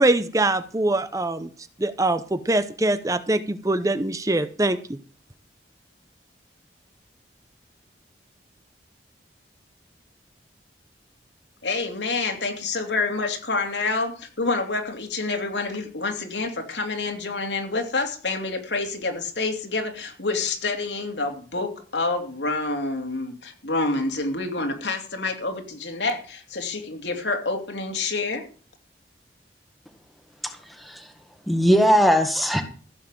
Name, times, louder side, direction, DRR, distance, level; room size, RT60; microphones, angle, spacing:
voice 1, 0.0-1.5 1.8-5.0, right 2 dB, 20° right, 12 dB, 0.7 m, -23 dB
voice 2, 11.6-28.4, left 3 dB, 80° left, 3 dB, 2.9 m, -28 dB
voice 3, 30.4-31.1 31.5-32.6, equal, ahead, 5 dB, 1.5 m, -20 dB
15.0 x 7.5 x 7.6 m, 0.41 s
head